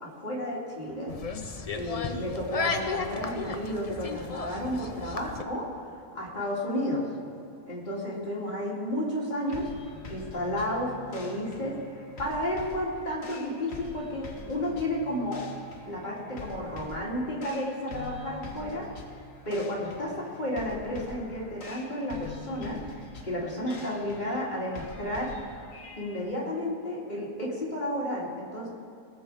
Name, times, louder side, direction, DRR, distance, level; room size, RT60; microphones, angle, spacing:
voice 1, 0.0-1.1 1.7-5.6 6.1-7.0 7.7-9.7 10.1-15.4 15.8-18.9 19.5-22.8 23.2-25.3 26.0-28.7, left 1 dB, 30° left, -5 dB, 2.7 m, -32 dB
sound 1, 1.1-5.4, left 4 dB, 70° left, 0.3 m, -34 dB
sound 2, 9.5-26.2, left 2 dB, 45° left, 1.4 m, -45 dB
19.5 x 7.1 x 4.8 m, 2.5 s
omnidirectional pair, 1.7 m